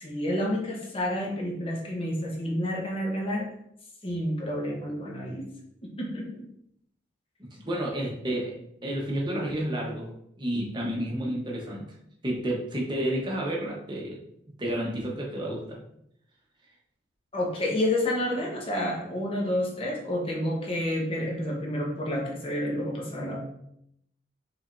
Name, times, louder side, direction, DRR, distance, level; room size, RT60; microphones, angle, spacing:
voice 1, 0.0-3.5 4.0-5.5 5.8-6.4 17.3-23.4, left 1 dB, 30° left, -2 dB, 1.0 m, -29 dB
voice 2, 7.6-11.9 12.2-14.2 14.6-15.8, right 1 dB, 25° right, -2 dB, 0.9 m, -30 dB
5.9 x 3.4 x 2.6 m, 0.74 s
head